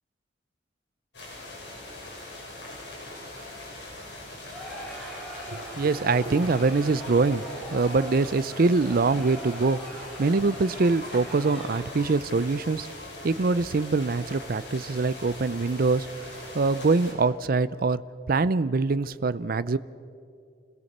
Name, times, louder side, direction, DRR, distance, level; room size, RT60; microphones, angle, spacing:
sound 1, 1.1-17.1, left 1 dB, 70° left, 6.5 m, -41 dB
Crowd, 4.5-12.2, equal, ahead, 5.2 m, -42 dB
voice 1, 5.5-7.5 7.7-9.8 10.2-12.9 13.2-16.1 16.5-18.0 18.3-19.8, right 3 dB, 55° right, 16 dB, 0.5 m, -24 dB
sound 2, 6.8-7.2 7.8-8.1 9.0-9.4 10.2-10.3 10.7-11.1 11.9-13.1 13.5-13.6, left 4 dB, 50° left, 1.5 m, -48 dB
27.0 x 17.0 x 6.7 m, 2.4 s
head